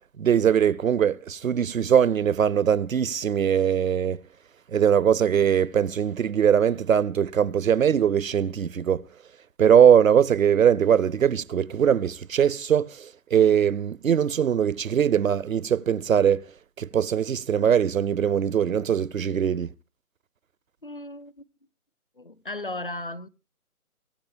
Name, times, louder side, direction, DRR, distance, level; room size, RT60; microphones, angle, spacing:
voice 1, 0.2-4.2 4.7-9.0 9.6-16.5 16.8-19.7, right 8 dB, 65° right, 0.6 m, -21 dB
voice 2, 20.8-21.5 22.2-23.3, left 2 dB, 40° left, 0.6 m, -36 dB
23.5 x 9.4 x 3.4 m
hypercardioid pair, 170°, 44 cm